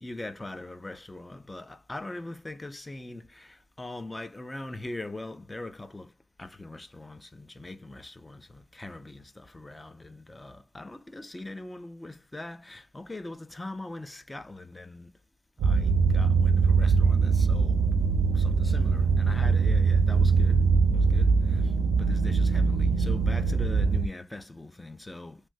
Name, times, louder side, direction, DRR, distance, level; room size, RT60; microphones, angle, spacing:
voice 1, 0.0-6.1 6.4-15.1 15.6-17.8 18.3-20.6 20.9-21.7 22.0-25.4, left 2 dB, 15° left, 0.5 m, -41 dB
sound 1, 15.6-24.1, right 5 dB, 65° right, 0.6 m, -22 dB
3.4 x 2.6 x 2.5 m
cardioid pair, 90°, 0 cm